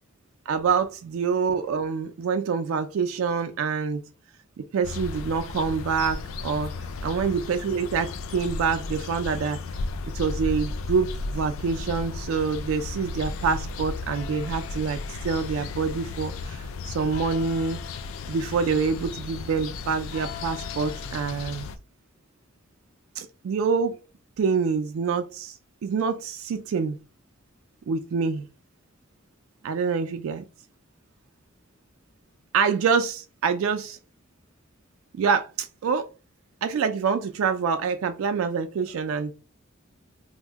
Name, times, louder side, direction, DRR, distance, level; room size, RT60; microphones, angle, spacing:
voice 1, 0.5-4.0 4.6-6.7 7.0-9.6 10.1-17.8 18.3-21.7 23.2-24.0 24.4-27.0 27.9-28.5 29.6-30.4 32.5-34.0 35.2-36.1 36.6-39.3, right 5 dB, 90° right, 0.3 m, -26 dB
sound 1, 4.8-21.8, left 3 dB, 80° left, 0.3 m, -34 dB
2.7 x 2.0 x 3.4 m
head